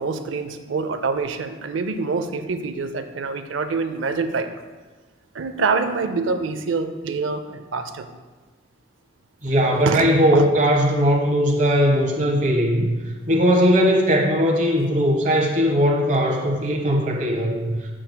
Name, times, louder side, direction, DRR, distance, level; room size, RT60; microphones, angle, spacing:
voice 1, 0.0-4.5 5.3-8.1 9.9-10.7, right 4 dB, 85° right, 9 dB, 0.5 m, -26 dB
voice 2, 9.4-17.7, equal, 40° right, 0 dB, 1.1 m, -19 dB
7.8 x 7.5 x 2.2 m, 1.3 s
head